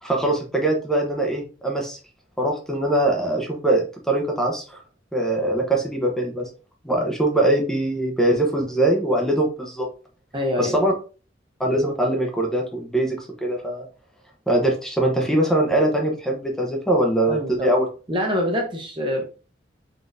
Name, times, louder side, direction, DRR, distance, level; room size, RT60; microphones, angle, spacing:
voice 1, 0.0-2.0 2.4-4.8 5.1-6.5 6.8-9.9 10.6-10.9 11.6-13.8 14.5-17.9, right 1 dB, 5° left, -1 dB, 0.8 m, -22 dB
voice 2, 10.3-10.8 17.3-17.7 18.1-19.2, left 1 dB, 25° right, 2 dB, 0.8 m, -25 dB
4.1 x 3.7 x 2.6 m, 0.35 s
head